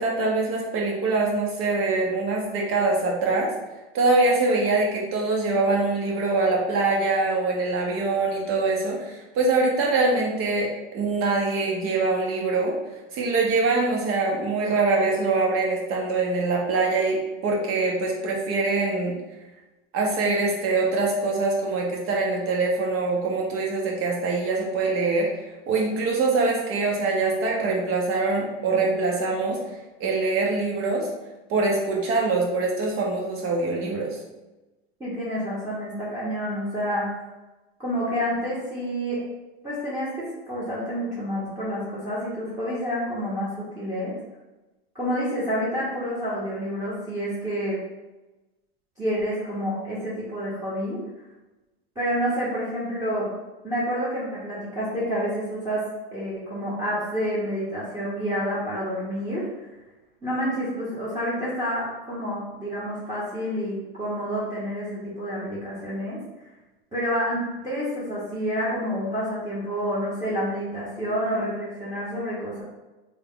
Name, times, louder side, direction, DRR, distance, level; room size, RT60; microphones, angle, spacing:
voice 1, 0.0-3.5 3.9-12.8 13.1-19.2 19.9-25.3 25.7-29.6 30.0-31.1 31.5-34.2, right 3 dB, 45° right, -1 dB, 1.1 m, -24 dB
voice 2, 35.0-37.1 37.8-39.2 39.6-44.1 44.9-47.8 49.0-51.0 51.9-53.3 53.6-55.8 56.1-59.5 60.2-66.2 66.9-72.6, equal, 10° right, -8 dB, 1.2 m, -28 dB
3.5 x 2.4 x 3.7 m, 1.1 s
supercardioid pair, 110°, 31 cm